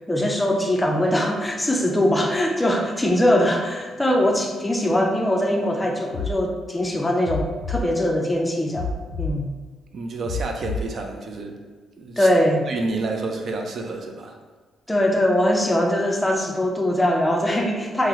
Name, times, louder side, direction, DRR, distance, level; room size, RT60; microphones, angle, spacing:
voice 1, 0.1-8.9 9.2-9.5 12.2-12.7 14.9-18.1, left 1 dB, 10° left, 2 dB, 0.4 m, -21 dB
sound 1, 6.1-6.3 7.2-7.8 8.7-9.3 10.2-10.8, left 3 dB, 80° left, 0.3 m, -28 dB
voice 2, 9.9-11.6 12.0-12.3 12.7-14.4, right 3 dB, 55° right, 3 dB, 0.4 m, -29 dB
2.8 x 2.0 x 3.6 m, 1.4 s
cardioid pair, 90°, 0 cm